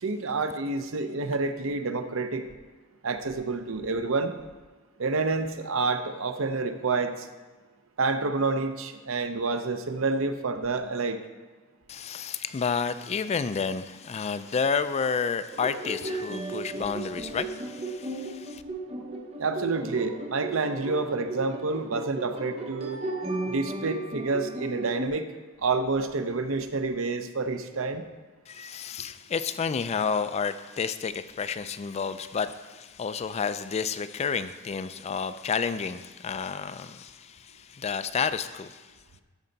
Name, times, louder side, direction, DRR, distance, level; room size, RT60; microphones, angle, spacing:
voice 1, 0.0-2.4 3.0-4.3 5.0-7.3 8.0-11.2 19.4-23.0 23.5-25.3 25.6-28.0, right 3 dB, 70° right, 8 dB, 0.7 m, -28 dB
voice 2, 11.9-18.6 28.5-38.8, left 6 dB, 30° left, 12 dB, 0.3 m, -30 dB
sound 1, 15.5-25.1, right 2 dB, 30° right, 0.8 m, -35 dB
13.0 x 5.5 x 4.0 m, 1.3 s
head